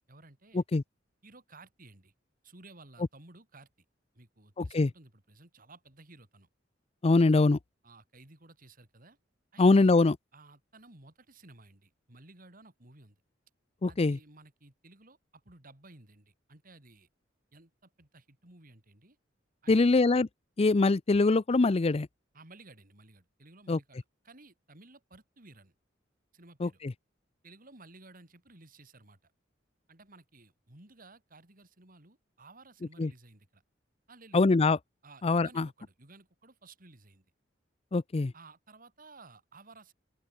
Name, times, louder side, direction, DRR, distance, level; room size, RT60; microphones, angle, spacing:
voice 1, 0.1-0.6 1.2-2.1 2.4-3.7 4.1-6.5 7.8-9.2 9.5-10.0 10.3-13.2 13.9-17.1 17.5-19.2 19.6-19.9 22.3-25.7 26.3-26.8 27.4-29.3 29.9-33.6 34.1-34.4 35.0-37.3 38.3-39.9, right 2 dB, 50° right, 4.0 m, -55 dB
voice 2, 4.6-4.9 7.0-7.6 9.6-10.2 13.8-14.2 19.7-20.3 20.6-22.1 23.7-23.8 26.6-26.9 33.0-33.1 34.3-34.8 35.2-35.7 37.9-38.3, left 3 dB, 35° left, 0.5 m, -23 dB
open air
head